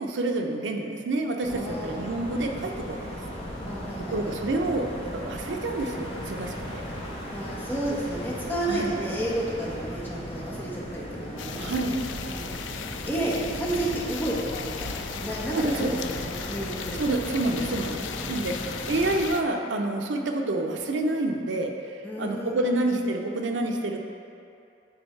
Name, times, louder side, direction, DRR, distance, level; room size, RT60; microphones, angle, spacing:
voice 1, 0.0-3.2 4.1-6.8 8.7-8.9 11.6-12.0 15.5-16.0 17.0-24.1, right 2 dB, 75° right, 3 dB, 0.6 m, -28 dB
sound 1, 1.4-19.3, equal, 30° left, 1.0 m, -37 dB
voice 2, 1.5-2.0 3.7-4.3 7.3-11.8 12.3-12.6 12.8-17.0 17.6-18.2 22.0-23.0, right 1 dB, 10° left, -6 dB, 1.1 m, -32 dB
sound 2, 11.4-19.4, left 7 dB, 75° left, 0.3 m, -37 dB
9.6 x 3.5 x 3.2 m, 2.6 s
head